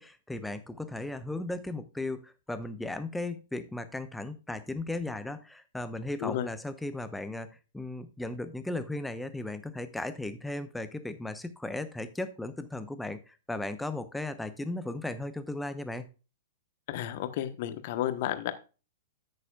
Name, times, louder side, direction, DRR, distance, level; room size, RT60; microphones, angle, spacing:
voice 1, 0.0-16.1, left 2 dB, 5° left, 10 dB, 0.9 m, -36 dB
voice 2, 16.9-18.5, left 12 dB, 50° left, 10 dB, 1.2 m, -32 dB
13.5 x 6.6 x 2.4 m, 0.33 s
figure-of-eight pair, 105°, 0 cm